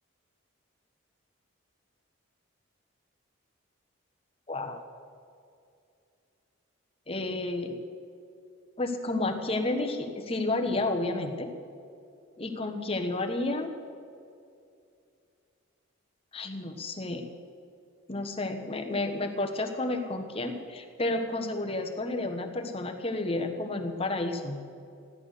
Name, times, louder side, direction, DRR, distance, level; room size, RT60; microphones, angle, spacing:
voice 1, 4.5-4.8 7.1-7.8 8.8-11.5 12.4-13.7 16.3-17.3 18.1-24.6, left 2 dB, 25° left, 4 dB, 1.2 m, -31 dB
15.0 x 11.5 x 6.7 m, 2.5 s
head